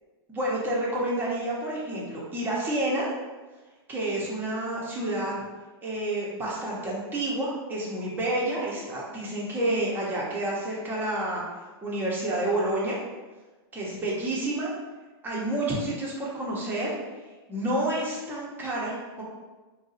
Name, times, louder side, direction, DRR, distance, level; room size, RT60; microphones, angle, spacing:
voice 1, 0.3-3.1 3.9-5.3 5.8-11.4 11.8-13.0 13.7-14.7 15.2-16.9 17.5-19.2, right 1 dB, 15° right, -5 dB, 0.9 m, -29 dB
2.7 x 2.3 x 4.0 m, 1.3 s
hypercardioid pair, 135°, 14 cm